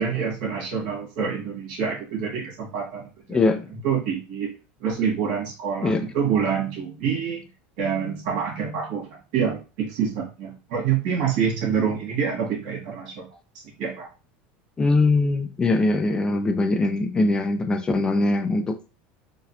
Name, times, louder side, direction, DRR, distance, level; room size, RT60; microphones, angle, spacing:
voice 1, 0.0-3.0 3.3-3.4 3.8-4.5 4.8-7.4 7.8-13.3 13.8-14.1, right 7 dB, 70° right, -2 dB, 1.6 m, -26 dB
voice 2, 3.3-3.7 5.8-6.1 14.8-18.8, left 2 dB, 15° left, 6 dB, 0.3 m, -22 dB
4.0 x 2.2 x 2.7 m, 0.33 s
supercardioid pair, 135°, 5 cm